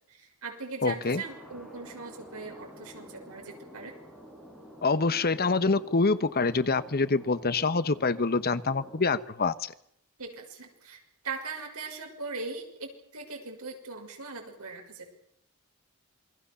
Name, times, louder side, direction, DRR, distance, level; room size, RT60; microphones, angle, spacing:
voice 1, 0.1-4.0 10.2-15.1, right 4 dB, 75° right, 3 dB, 6.2 m, -40 dB
voice 2, 0.8-1.2 4.8-9.7, left 3 dB, 45° left, 14 dB, 1.1 m, -26 dB
Thunder, 1.0-9.1, equal, ahead, 7.2 m, -49 dB
27.5 x 21.5 x 7.0 m, 0.71 s
head